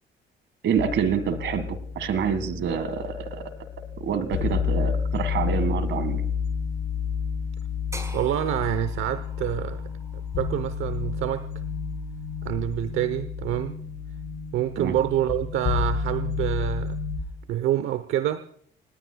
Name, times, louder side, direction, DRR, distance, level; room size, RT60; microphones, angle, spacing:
voice 1, 0.6-3.5 4.0-6.2 14.8-14.9, right 7 dB, 70° right, 13 dB, 1.9 m, -27 dB
sound 1, 0.8-17.2, left 6 dB, 70° left, 4.3 m, -30 dB
sound 2, 7.9-12.0, right 1 dB, 15° right, 5.4 m, -45 dB
voice 2, 8.1-9.8 10.1-11.5 12.4-13.8 14.5-17.0 17.5-18.4, right 12 dB, 85° right, 12 dB, 0.9 m, -27 dB
27.5 x 18.5 x 2.3 m, 0.62 s
cardioid pair, 90°, 20 cm